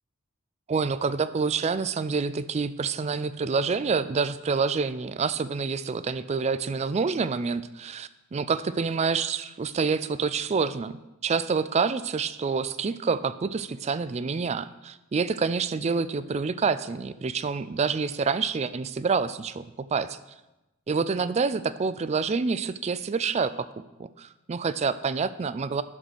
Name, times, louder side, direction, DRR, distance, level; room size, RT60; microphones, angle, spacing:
voice 1, 0.7-20.2 20.9-23.7 24.0-25.8, right 5 dB, 30° right, 14 dB, 0.3 m, -27 dB
11.0 x 4.2 x 6.4 m, 0.99 s
head